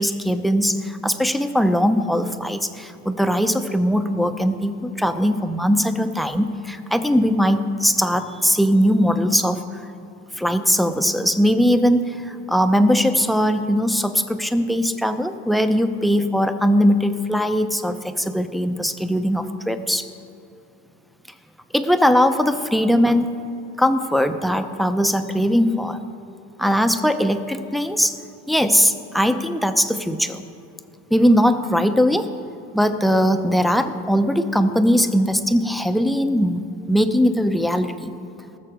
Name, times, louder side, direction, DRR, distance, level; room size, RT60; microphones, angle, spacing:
voice 1, 0.0-9.9 10.4-20.1 21.7-23.3 23.8-26.0 26.6-28.1 28.5-30.4 31.1-32.3 32.7-38.1, equal, ahead, 8 dB, 0.7 m, -20 dB
19.5 x 6.7 x 5.1 m, 2.8 s
supercardioid pair, 80°, 39 cm